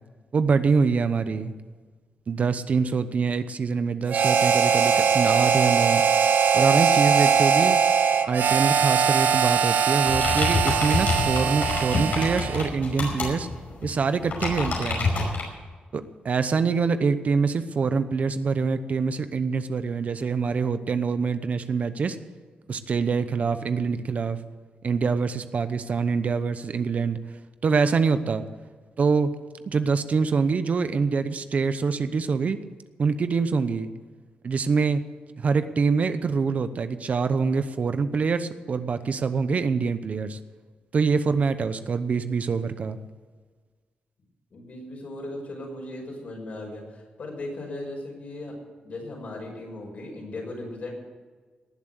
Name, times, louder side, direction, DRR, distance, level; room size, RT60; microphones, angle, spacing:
voice 1, 0.3-1.5 2.3-6.0 6.5-7.8 8.3-13.5 13.8-15.1 15.9-22.2 22.7-24.4 24.8-27.2 27.6-28.4 29.0-29.3 29.7-32.6 33.0-33.9 34.4-35.0 35.4-40.4 40.9-43.0, right 5 dB, 50° right, 11 dB, 0.9 m, -25 dB
Harmonica, 4.1-12.7, right 6 dB, 75° right, 1.0 m, -21 dB
sound 1, 10.0-15.4, left 3 dB, 70° left, 5.3 m, -28 dB
voice 2, 44.5-48.6 48.8-50.9, left 2 dB, 55° left, 0 dB, 6.0 m, -37 dB
19.0 x 7.5 x 8.2 m, 1.4 s
cardioid pair, 110°, 3 cm